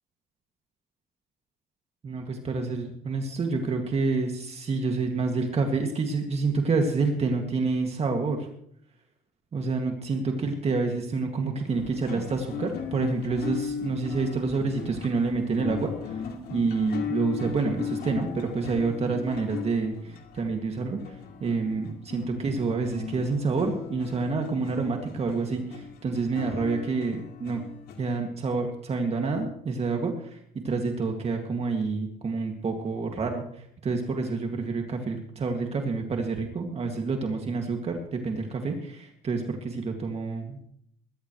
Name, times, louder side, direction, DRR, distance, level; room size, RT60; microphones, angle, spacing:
voice 1, 2.0-8.5 9.5-27.6 28.0-30.4 30.6-40.6, right 4 dB, 40° right, 3 dB, 2.3 m, -28 dB
sound 1, 11.7-28.2, left 6 dB, 70° left, 2.5 m, -38 dB
22.0 x 12.0 x 3.2 m, 0.69 s
cardioid pair, 110°, 17 cm